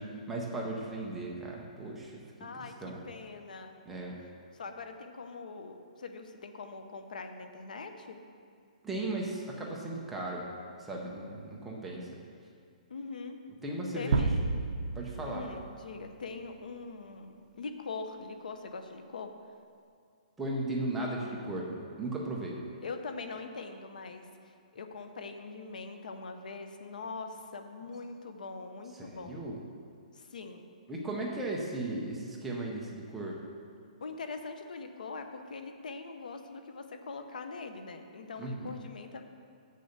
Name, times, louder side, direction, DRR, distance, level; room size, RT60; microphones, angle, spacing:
voice 1, 0.0-2.2 2.8-3.0 3.9-4.2 8.8-10.5 10.8-12.1 13.6-14.3 14.9-15.4 20.4-22.6 29.0-29.6 30.9-33.4 38.4-38.8, right 2 dB, 5° right, -3 dB, 0.6 m, -36 dB
voice 2, 2.4-3.8 4.5-8.2 12.9-13.4 13.9-14.3 15.3-19.3 22.8-29.4 30.1-30.6 34.0-39.2, left 4 dB, 75° left, 7 dB, 0.8 m, -42 dB
sound 1, 14.1-16.1, right 4 dB, 70° right, 0.6 m, -31 dB
6.8 x 6.6 x 6.6 m, 2.4 s
hypercardioid pair, 180°, 4 cm